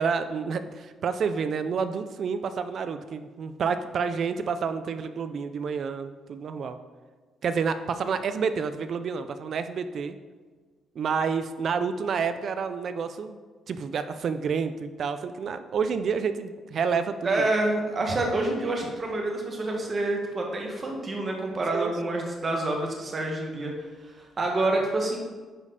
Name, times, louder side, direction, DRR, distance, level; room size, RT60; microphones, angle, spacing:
voice 1, 0.0-6.8 7.4-10.2 11.0-13.4 13.7-17.5 21.7-22.1, right 6 dB, 60° right, 10 dB, 0.6 m, -29 dB
voice 2, 17.2-23.8 24.0-25.2, right 2 dB, 35° right, 0 dB, 1.9 m, -27 dB
10.0 x 5.3 x 4.2 m, 1.4 s
cardioid pair, 90°, 0 cm